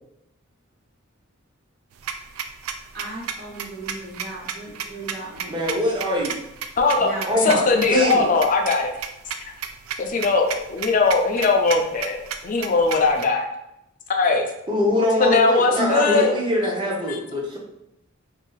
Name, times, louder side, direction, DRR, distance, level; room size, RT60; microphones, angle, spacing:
sound 1, 1.9-13.2, right 7 dB, 85° right, 0.3 m, -32 dB
voice 1, 2.9-5.6 7.0-7.5, right 2 dB, 50° right, -5 dB, 1.1 m, -36 dB
voice 2, 5.5-6.3 7.3-8.3 14.7-17.6, left 1 dB, 25° right, -2 dB, 0.6 m, -23 dB
voice 3, 6.8-7.1 7.4-8.9 10.0-13.5 14.1-14.5 15.2-16.3 17.1-17.2, left 3 dB, 40° left, 3 dB, 0.4 m, -20 dB
2.6 x 2.4 x 3.8 m, 0.84 s
head